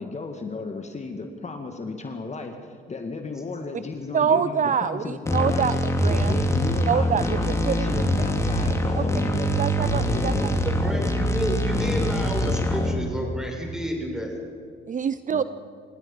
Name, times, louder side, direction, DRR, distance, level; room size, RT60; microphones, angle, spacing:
voice 1, 0.0-5.7 6.1-9.6 9.9-10.6 15.3-15.4, left 3 dB, 35° left, 5 dB, 2.0 m, -34 dB
voice 2, 4.1-6.3 6.9-7.2 7.7-7.8 9.6-10.5 14.9-15.4, right 7 dB, 40° right, 14 dB, 0.6 m, -25 dB
sound 1, 5.3-12.9, equal, 15° left, 3.2 m, -24 dB
voice 3, 10.6-14.4, equal, 5° right, 0 dB, 6.6 m, -30 dB
28.5 x 16.5 x 5.6 m, 2.3 s
cardioid pair, 90°, 20 cm